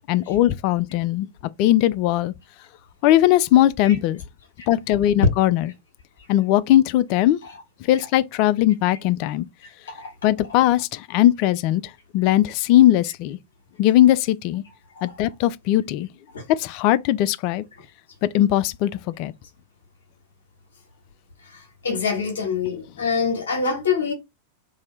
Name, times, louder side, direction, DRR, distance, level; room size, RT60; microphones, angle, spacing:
voice 1, 0.1-1.3 1.6-2.3 3.0-4.2 4.7-5.7 6.3-7.4 7.9-9.5 10.2-11.8 12.1-13.4 13.8-14.6 15.0-16.1 16.5-17.6 18.2-19.3, left 13 dB, 45° left, 0.3 m, -19 dB
voice 2, 21.4-24.1, left 5 dB, 65° left, 1.0 m, -26 dB
2.7 x 2.6 x 3.1 m
figure-of-eight pair, 90°, 0 cm